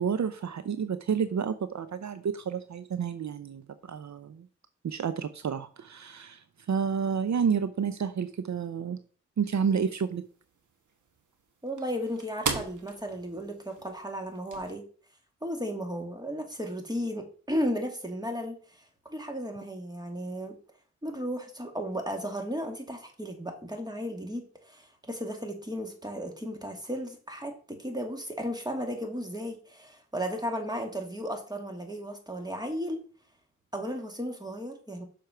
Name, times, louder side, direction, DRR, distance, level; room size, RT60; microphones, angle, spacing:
voice 1, 0.0-4.5 4.8-9.0 9.4-10.2, right 6 dB, 65° right, 11 dB, 0.7 m, -30 dB
sound 1, 9.4-14.7, right 5 dB, 85° right, 1.3 m, -40 dB
voice 2, 11.6-14.9 15.4-20.6 21.0-33.1 33.7-35.0, equal, 15° right, 3 dB, 2.4 m, -35 dB
6.7 x 4.7 x 5.7 m, 0.42 s
cardioid pair, 50°, 30 cm